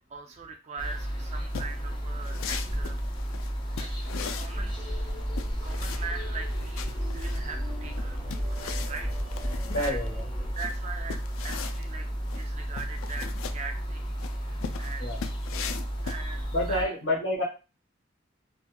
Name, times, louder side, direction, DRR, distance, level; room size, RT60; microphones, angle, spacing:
voice 1, 0.0-3.0 3.7-3.9 4.4-4.8 5.6-10.0 10.5-12.1 12.3-14.1 14.4-15.0 16.0-16.9, right 4 dB, 35° right, 3 dB, 0.4 m, -41 dB
sound 1, 0.8-16.8, equal, 25° left, 0.5 m, -33 dB
sound 2, 1.5-16.7, left 7 dB, 90° left, 0.3 m, -40 dB
sound 3, 4.5-10.5, equal, 10° right, 0.9 m, -36 dB
voice 2, 9.6-10.2 15.0-15.2 16.5-17.4, left 1 dB, 70° left, -2 dB, 1.1 m, -28 dB
2.7 x 2.6 x 2.2 m, 0.31 s
head